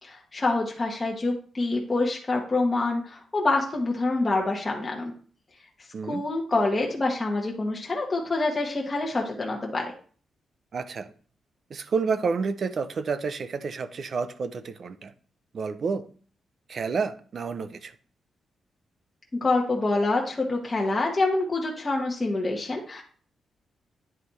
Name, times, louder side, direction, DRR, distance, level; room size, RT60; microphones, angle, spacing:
voice 1, 0.0-5.1 6.1-9.9 19.4-23.0, left 2 dB, 25° left, -1 dB, 1.0 m, -26 dB
voice 2, 10.7-11.1 11.7-15.1 15.5-16.1 16.7-17.9, right 5 dB, 45° right, 13 dB, 0.5 m, -29 dB
9.7 x 3.3 x 4.0 m, 0.43 s
wide cardioid pair, 135°, 0 cm